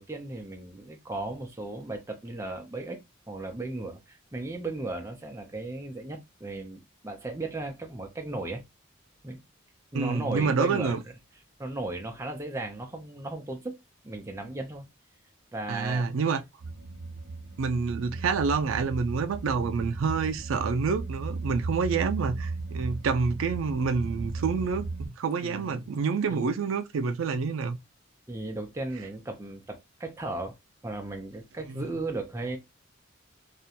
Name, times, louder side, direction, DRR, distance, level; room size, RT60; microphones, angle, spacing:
voice 1, 0.0-3.0 3.3-8.6 9.2-9.4 9.9-11.0 11.6-14.9 15.5-16.1 25.4-25.8 26.3-26.5 28.3-30.5 30.8-32.6, right 2 dB, 15° right, 0.4 m, -36 dB
voice 2, 9.9-11.0 15.7-16.4 17.6-27.8 31.7-31.9, right 5 dB, 85° right, 0.4 m, -28 dB
sound 1, 16.6-25.1, right 3 dB, 55° right, 0.7 m, -35 dB
2.4 x 2.1 x 2.7 m
head